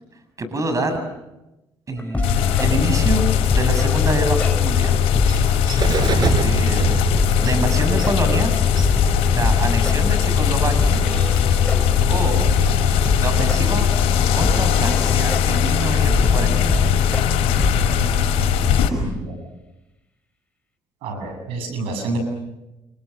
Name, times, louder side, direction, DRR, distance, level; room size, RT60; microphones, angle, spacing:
voice 1, 0.4-1.0 1.9-4.9 5.7-5.8 6.1-6.9 7.4-8.5 9.3-11.0 12.1-12.6 13.2-13.9 14.3-16.6, right 2 dB, 35° right, 8 dB, 7.2 m, -26 dB
sound 1, 2.0-6.0 6.2-6.3 6.7-6.8 7.1-9.9 10.3-10.4 10.8-13.2 13.5-13.6 14.0-14.1 14.4-17.2 17.6-17.8, left 2 dB, 15° left, 4.8 m, -26 dB
sound 2, 2.2-18.9, left 8 dB, 85° left, 5.5 m, -19 dB
Bird, 3.7-15.2, right 4 dB, 50° right, 4.9 m, -29 dB
voice 2, 19.0-19.3 21.0-22.2, right 3 dB, 85° right, 5 dB, 7.6 m, -28 dB
29.0 x 28.5 x 6.7 m, 0.97 s
supercardioid pair, 75°, 9 cm